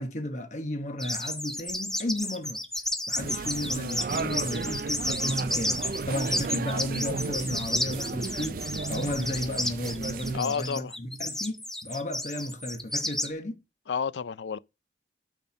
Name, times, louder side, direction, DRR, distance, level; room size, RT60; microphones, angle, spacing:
voice 1, 0.0-2.6 3.1-13.6, left 1 dB, 40° left, 1.1 m, -34 dB
sound 1, 1.0-13.3, left 1 dB, 5° left, 0.8 m, -32 dB
sound 2, 3.2-10.4, right 4 dB, 50° right, 0.4 m, -34 dB
voice 2, 10.3-11.0 13.9-14.6, left 6 dB, 75° left, 0.4 m, -30 dB
8.9 x 4.3 x 6.6 m
head